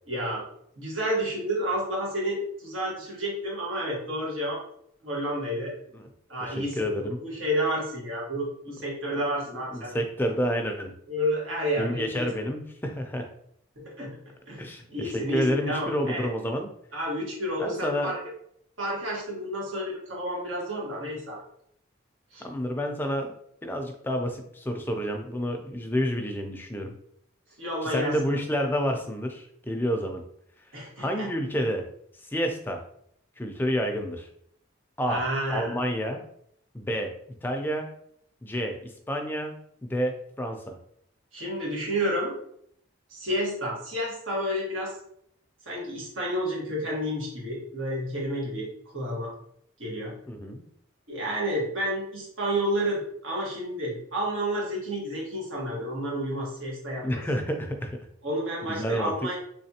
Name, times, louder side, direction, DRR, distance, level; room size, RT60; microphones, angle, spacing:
voice 1, 0.1-0.4 0.8-4.6 5.0-5.7 6.3-9.9 11.1-12.3 13.8-14.2 14.5-16.3 16.9-18.2 18.8-21.4 22.3-22.4 27.6-28.1 30.7-31.3 35.1-35.7 41.3-42.4 43.1-45.0 45.6-48.7 48.9-49.3 49.8-50.1 51.1-57.5 58.2-59.4, equal, 90° right, -4 dB, 1.4 m, -30 dB
voice 2, 6.4-7.2 9.7-10.9 11.8-13.3 14.6-16.7 17.6-18.1 22.4-23.3 23.6-26.9 27.8-30.2 31.0-31.9 32.2-32.8 33.4-34.3 35.0-35.2 35.5-36.2 36.7-37.1 37.4-37.9 38.4-39.5 39.8-40.8 50.3-50.6 57.0-58.0 58.6-59.1, equal, 10° left, 4 dB, 0.4 m, -29 dB
3.5 x 3.2 x 2.8 m, 0.69 s
head